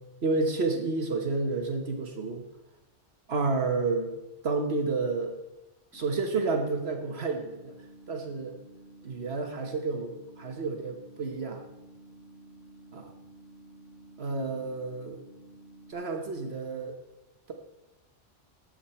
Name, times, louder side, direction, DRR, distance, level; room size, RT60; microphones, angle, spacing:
voice 1, 0.2-2.4 3.3-4.1 4.4-5.4 5.9-7.7 8.1-8.5 9.0-11.7 14.2-15.2 15.9-17.0, right 3 dB, 60° right, 4 dB, 1.4 m, -30 dB
sound 1, 5.9-15.9, right 1 dB, 5° left, 2.4 m, -52 dB
18.5 x 7.7 x 4.3 m, 1.0 s
omnidirectional pair, 1.2 m